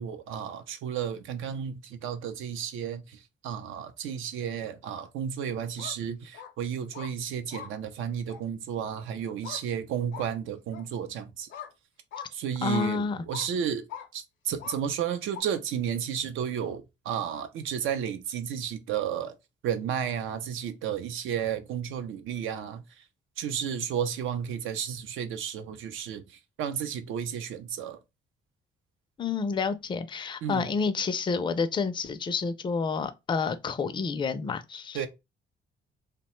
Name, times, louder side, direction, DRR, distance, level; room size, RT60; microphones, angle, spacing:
voice 1, 0.0-11.5 12.3-13.9 14.1-19.3 19.6-23.0 23.4-28.0 30.4-30.7 34.9-35.1, right 8 dB, 85° right, 0.5 m, -32 dB
sound 1, 5.6-5.9 6.3-6.5 6.9-7.1 7.5-7.7 8.3-8.4 9.4-9.6 10.1-10.3 10.7-10.8 11.5-11.7 12.1-12.3 12.7-12.9 13.3-13.5 13.9-14.1 14.6-14.8 15.3-15.4, left 8 dB, 75° left, 0.6 m, -41 dB
voice 2, 12.6-13.2 29.2-35.0, left 5 dB, 25° left, 0.4 m, -29 dB
2.8 x 2.1 x 3.0 m
cardioid pair, 90°, 20 cm